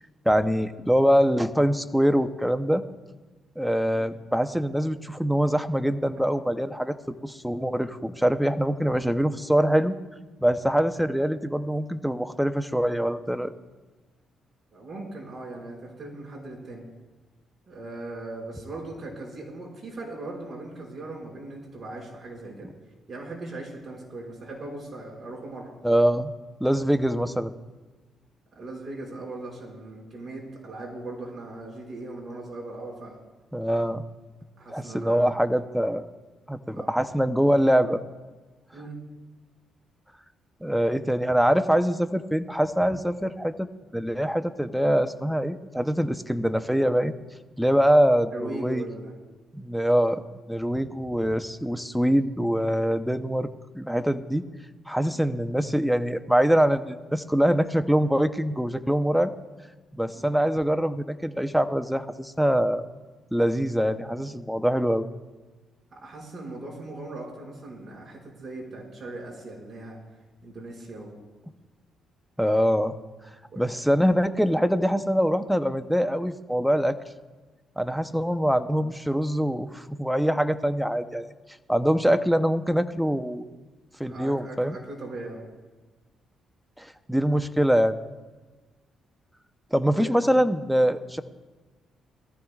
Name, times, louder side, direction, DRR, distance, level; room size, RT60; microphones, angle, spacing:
voice 1, 0.3-2.8 3.6-10.0 10.4-13.5 25.8-26.3 26.6-27.5 33.5-34.0 34.7-36.1 36.5-38.0 40.6-43.7 43.9-47.1 47.6-48.8 49.5-50.2 50.5-53.5 53.7-54.4 54.9-59.3 59.9-62.9 63.3-65.1 72.4-72.9 73.6-77.0 77.8-81.3 81.7-83.5 84.0-84.8 86.8-88.0 89.7-91.2, equal, ahead, 9 dB, 0.8 m, -24 dB
voice 2, 14.7-16.8 17.7-22.7 23.1-25.7 28.5-33.2 34.6-35.4 36.7-36.9 38.7-39.0 48.3-49.1 55.0-55.2 60.1-60.3 65.9-70.0 70.4-71.2 73.5-73.8 84.1-85.4 89.9-90.1, right 2 dB, 40° right, -2 dB, 5.4 m, -39 dB
22.0 x 14.0 x 2.4 m, 1.3 s
cardioid pair, 90°, 0 cm